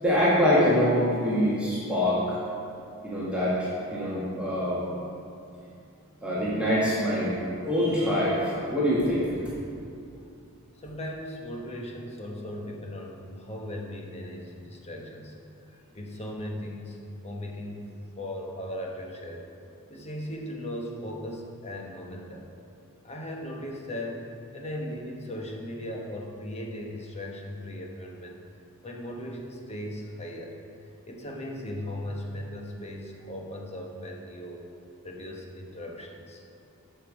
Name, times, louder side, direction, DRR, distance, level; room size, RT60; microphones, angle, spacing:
voice 1, 0.0-2.4 3.0-4.8 6.2-9.3, equal, 5° right, -9 dB, 1.6 m, -25 dB
voice 2, 10.8-15.4 15.6-17.9 18.2-19.4 19.9-22.5 23.0-28.4 28.8-30.5 31.0-34.6 35.0-36.4, left 1 dB, 30° left, 0 dB, 1.1 m, -38 dB
13.0 x 5.5 x 5.0 m, 2.5 s
head